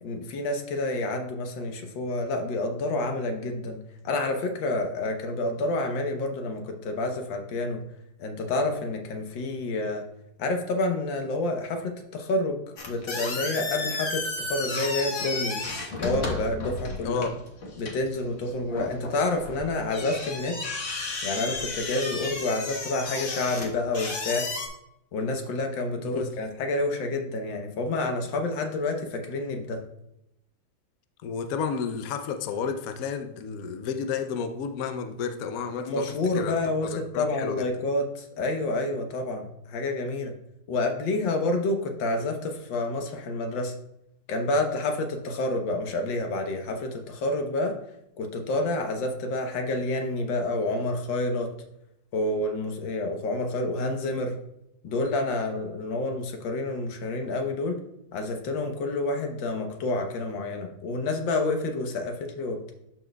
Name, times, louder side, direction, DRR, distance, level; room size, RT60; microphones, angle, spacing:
voice 1, 0.0-7.8 8.2-10.0 10.4-15.6 16.0-17.2 17.8-20.6 21.2-24.5 25.1-29.8 35.8-40.3 40.7-43.7 44.3-47.8 48.2-51.5 52.1-54.3 54.8-57.8 58.1-62.7, left 2 dB, 80° left, 1.7 m, -29 dB
sound 1, 12.8-24.7, left 3 dB, 45° left, 1.3 m, -33 dB
voice 2, 17.0-17.4 26.0-26.3 31.2-37.7, left 6 dB, 65° left, 0.9 m, -32 dB
12.5 x 4.4 x 2.2 m
omnidirectional pair, 2.0 m